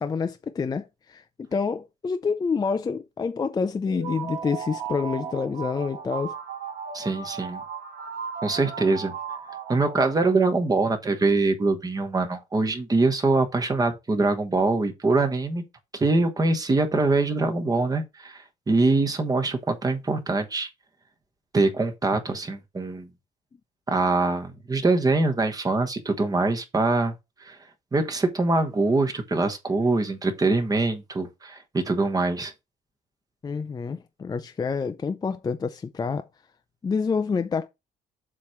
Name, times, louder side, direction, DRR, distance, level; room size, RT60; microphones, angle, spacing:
voice 1, 0.0-6.3 33.4-36.3 36.8-37.7, left 5 dB, 25° left, 0.6 m, -28 dB
sound 1, 3.9-10.7, right 6 dB, 80° right, 2.7 m, -36 dB
voice 2, 6.9-7.6 8.4-9.1 9.7-15.6 15.9-20.7 21.5-23.1 23.9-27.1 27.4-27.6 27.9-32.5, right 3 dB, 20° right, 1.2 m, -23 dB
7.4 x 3.2 x 5.7 m
cardioid pair, 110°, 17 cm